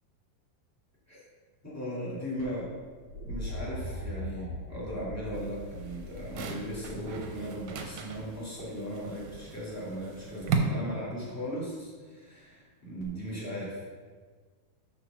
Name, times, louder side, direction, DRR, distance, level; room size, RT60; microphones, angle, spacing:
voice 1, 1.6-2.7 3.3-13.8, equal, 20° left, -8 dB, 0.4 m, -37 dB
sound 1, 2.4-8.3 9.9-10.4 13.0-13.1, left 1 dB, 65° left, 2.5 m, -41 dB
sound 2, 5.3-10.6, right 7 dB, 75° right, 1.7 m, -38 dB
6.2 x 4.6 x 6.1 m, 1.5 s
omnidirectional pair, 4.0 m